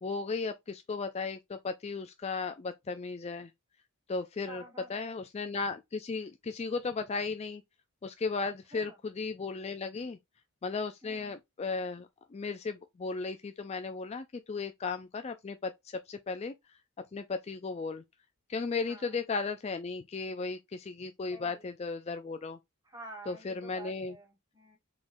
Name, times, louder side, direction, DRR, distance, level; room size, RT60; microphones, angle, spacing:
voice 1, 0.0-3.5 4.1-4.6 4.9-7.6 8.0-10.2 10.6-16.5 17.1-18.0 18.5-22.6 23.3-24.1, left 4 dB, 30° left, 0.3 m, -35 dB
voice 2, 4.5-5.2 8.7-9.0 11.0-11.4 18.9-19.1 21.3-21.7 22.8-24.8, right 2 dB, 15° right, 1.4 m, -49 dB
5.0 x 3.6 x 2.6 m
head